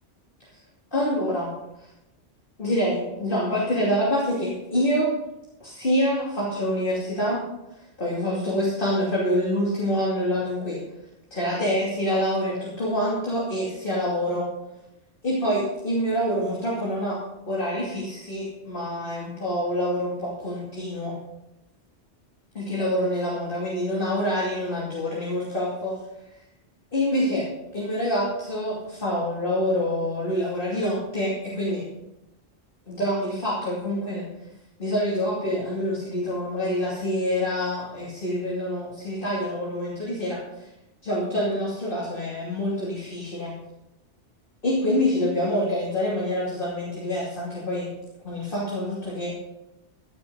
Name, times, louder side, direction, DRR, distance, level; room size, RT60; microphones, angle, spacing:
voice 1, 0.9-1.5 1.8-1.9 2.6-5.1 5.6-7.4 7.8-10.8 11.3-14.5 15.2-17.2 17.4-21.2 22.5-26.0 26.9-27.5 27.7-31.8 32.9-34.3 34.8-40.7 41.0-43.5 44.6-47.9 48.2-49.3, equal, 50° left, -6 dB, 2.9 m, -26 dB
15.5 x 9.0 x 4.0 m, 0.89 s
omnidirectional pair, 1.2 m